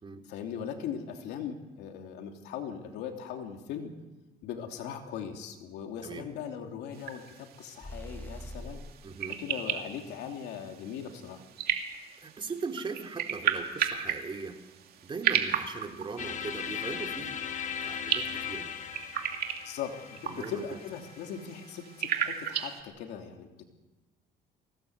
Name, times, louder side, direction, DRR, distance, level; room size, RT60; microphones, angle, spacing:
voice 1, 0.1-3.9 4.4-8.8 9.4-11.4 19.6-23.6, left 8 dB, 85° left, 4 dB, 2.9 m, -39 dB
sound 1, 6.9-22.8, right 9 dB, 65° right, 2.5 m, -35 dB
sound 2, 7.8-9.0, equal, 10° left, 1.2 m, -42 dB
voice 2, 9.0-9.4 12.2-14.6 15.0-17.4 17.8-18.7 20.3-20.7, right 4 dB, 30° right, 5 dB, 2.7 m, -39 dB
sound 3, 16.2-22.1, left 8 dB, 45° left, 1.6 m, -38 dB
23.0 x 17.5 x 8.2 m, 1.1 s
cardioid pair, 110°, 17 cm